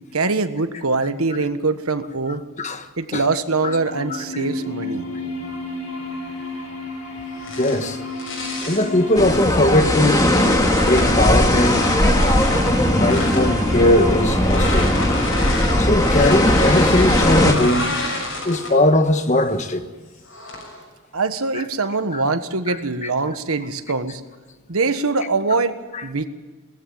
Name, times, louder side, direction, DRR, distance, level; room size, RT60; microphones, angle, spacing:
voice 1, 0.1-2.4 3.0-5.1 21.1-24.2 24.7-26.3, right 3 dB, 90° right, 1.4 m, -23 dB
sound 1, 3.2-19.1, left 2 dB, 85° left, 5.1 m, -33 dB
sound 2, 7.3-8.9 9.6-11.2 11.6-13.5 14.4-18.9 19.3-19.6 20.3-20.8, left 2 dB, 65° left, 6.7 m, -29 dB
voice 2, 7.6-8.0 8.6-10.3 10.8-11.9 12.9-14.9 15.8-17.9 18.4-19.9 22.1-22.2, left 1 dB, 35° left, 1.3 m, -19 dB
sound 3, 9.2-17.5, left 1 dB, 15° left, 2.0 m, -18 dB
20.0 x 15.0 x 9.0 m
head